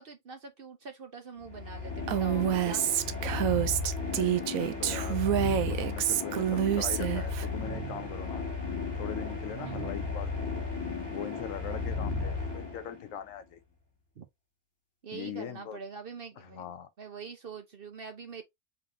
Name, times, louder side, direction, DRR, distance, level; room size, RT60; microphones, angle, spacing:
voice 1, 0.0-3.6 9.6-9.8 14.2-14.3 15.0-16.7 17.0-18.4, right 5 dB, 50° right, 0.8 m, -44 dB
sound 1, 1.4-13.1, left 3 dB, 15° left, 2.2 m, -35 dB
Female speech woman speaking, 2.1-7.5, right 11 dB, 75° right, 1.0 m, -28 dB
voice 2, 4.0-5.3 5.7-8.4 8.9-10.7 11.1-13.6 15.1-15.8 16.4-16.9, left 9 dB, 70° left, 1.0 m, -41 dB
4.0 x 3.9 x 2.6 m
omnidirectional pair, 1.5 m